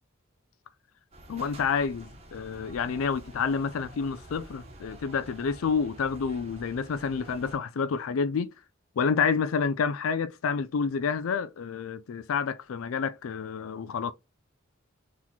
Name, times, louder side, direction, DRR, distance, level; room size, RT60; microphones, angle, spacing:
sound 1, 1.1-7.6, right 1 dB, 30° right, 1.0 m, -48 dB
voice 1, 1.3-8.5 9.0-14.1, left 5 dB, 80° left, 0.4 m, -29 dB
4.0 x 3.0 x 4.1 m
head